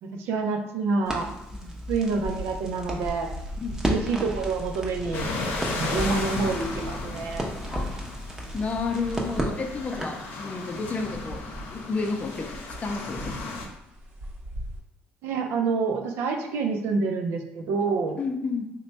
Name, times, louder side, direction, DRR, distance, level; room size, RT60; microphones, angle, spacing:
voice 1, 0.0-1.3 1.6-3.3 3.8-5.3 5.7-7.5 15.2-18.2, right 4 dB, 80° right, 4 dB, 0.5 m, -27 dB
Crackle, 1.0-10.3, equal, 15° right, 0.7 m, -34 dB
sound 1, 1.9-14.8, equal, 50° right, 0.8 m, -42 dB
sound 2, 5.1-13.7, left 3 dB, 70° left, 0.7 m, -35 dB
voice 2, 8.5-11.4 11.7-13.3 18.2-18.7, left 4 dB, 35° left, 3 dB, 0.6 m, -31 dB
3.2 x 2.2 x 4.0 m, 0.91 s
cardioid pair, 90°, 4 cm